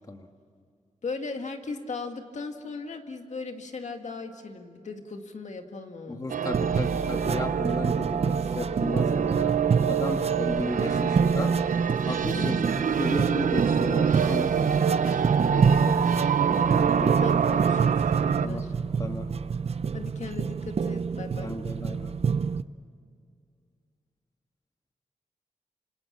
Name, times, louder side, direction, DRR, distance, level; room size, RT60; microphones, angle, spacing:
voice 1, 1.0-6.2 12.4-12.7 15.0-15.9 16.4-16.5 17.0-18.0 18.2-18.7 19.9-21.5, left 4 dB, 65° left, 5 dB, 2.0 m, -37 dB
voice 2, 6.1-9.6 9.8-11.5 12.0-14.9 16.5-17.1 18.4-18.6 19.0-19.3 21.4-22.1, left 2 dB, 25° left, 4 dB, 1.6 m, -34 dB
sound 1, 6.3-18.5, right 7 dB, 90° right, 0.8 m, -26 dB
sound 2, 6.5-22.6, right 5 dB, 50° right, 0.6 m, -27 dB
27.5 x 26.0 x 7.5 m, 2.2 s
wide cardioid pair, 165°, 13 cm